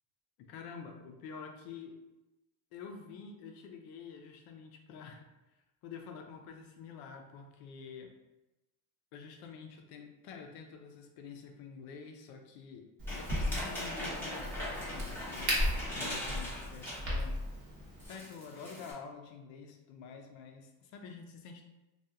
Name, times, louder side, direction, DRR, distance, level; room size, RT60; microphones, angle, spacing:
voice 1, 0.4-2.0 2.7-5.2 5.8-8.1 9.1-12.9 13.2-15.6 16.0-17.4 18.1-21.6, left 5 dB, 65° left, 4 dB, 0.5 m, -48 dB
Crack, 13.0-18.1, equal, 30° right, 0.8 m, -36 dB
sound 1, 13.1-17.3 17.6-17.7 18.0-18.9, left 1 dB, 5° left, 0.7 m, -41 dB
2.8 x 2.3 x 2.3 m, 1.0 s
cardioid pair, 140°, 39 cm